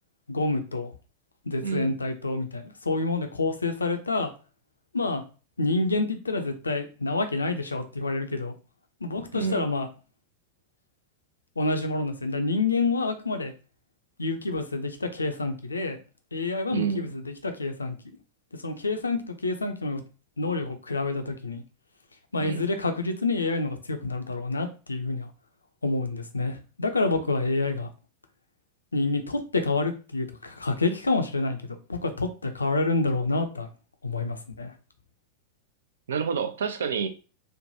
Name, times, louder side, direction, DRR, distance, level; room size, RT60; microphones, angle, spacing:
voice 1, 0.3-0.9 1.5-4.3 4.9-5.2 5.6-8.5 9.0-9.9 11.6-13.5 14.2-16.0 16.3-18.0 18.6-20.0 20.4-21.6 22.3-25.3 25.8-27.9 28.9-31.6 31.9-33.7 34.0-34.7, left 3 dB, 75° left, 7 dB, 0.4 m, -28 dB
voice 2, 1.6-2.0 9.3-9.7 16.7-17.1 22.4-22.7 36.1-37.1, right 6 dB, 65° right, 9 dB, 0.3 m, -29 dB
3.1 x 2.1 x 2.6 m, 0.34 s
figure-of-eight pair, 90°, 0 cm